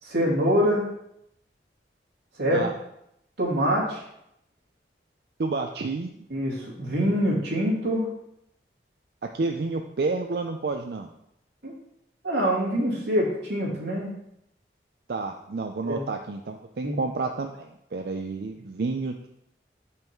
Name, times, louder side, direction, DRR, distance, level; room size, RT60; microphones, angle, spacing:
voice 1, 0.0-0.8 2.4-2.6 3.4-4.0 6.3-8.1 11.6-11.7 12.2-14.1 15.8-16.0 16.8-16.9, equal, 80° right, -4 dB, 2.3 m, -24 dB
voice 2, 5.4-6.3 9.2-11.1 15.1-19.3, right 3 dB, 60° right, 4 dB, 0.4 m, -30 dB
5.7 x 5.5 x 4.4 m, 0.78 s
head